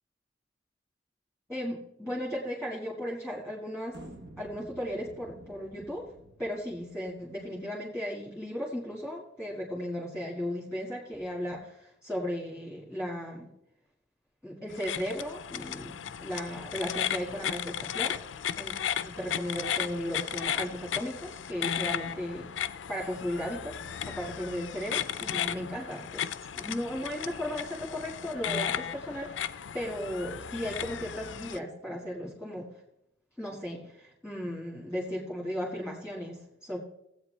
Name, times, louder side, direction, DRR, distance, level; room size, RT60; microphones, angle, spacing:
voice 1, 1.5-4.0 4.4-6.1 6.4-13.5 14.4-15.9 16.2-18.2 18.5-18.7 19.0-23.8 24.1-26.3 26.5-29.4 29.7-32.7 33.4-36.8, equal, 5° right, -3 dB, 1.7 m, -36 dB
sound 1, 3.9-7.5, right 1 dB, 65° right, 1.1 m, -51 dB
sound 2, 14.7-31.6, left 9 dB, 90° left, 0.5 m, -35 dB
18.5 x 8.1 x 3.3 m, 0.82 s
head